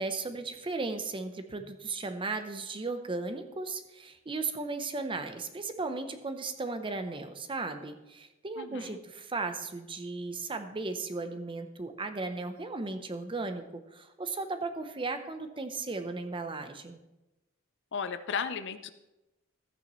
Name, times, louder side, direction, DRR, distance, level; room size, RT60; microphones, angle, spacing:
voice 1, 0.0-17.0, right 3 dB, 25° right, 8 dB, 0.7 m, -36 dB
voice 2, 8.6-9.0 17.9-18.9, left 6 dB, 55° left, 11 dB, 0.5 m, -35 dB
13.5 x 9.0 x 3.1 m, 1.0 s
head